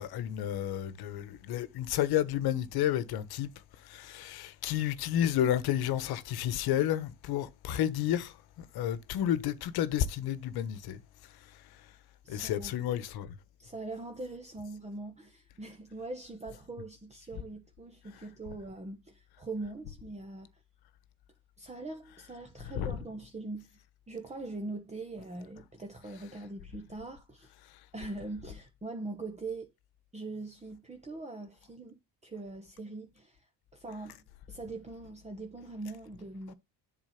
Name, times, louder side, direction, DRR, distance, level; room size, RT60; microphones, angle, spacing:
voice 1, 0.0-3.5 3.8-11.0 12.3-13.4 22.7-22.9, left 11 dB, 70° left, 1.2 m, -31 dB
voice 2, 12.2-12.7 13.6-20.5 21.6-23.8 24.1-27.5 27.9-29.7 30.1-36.5, right 2 dB, 15° right, 1.1 m, -42 dB
7.6 x 4.4 x 5.8 m
cardioid pair, 115°, 39 cm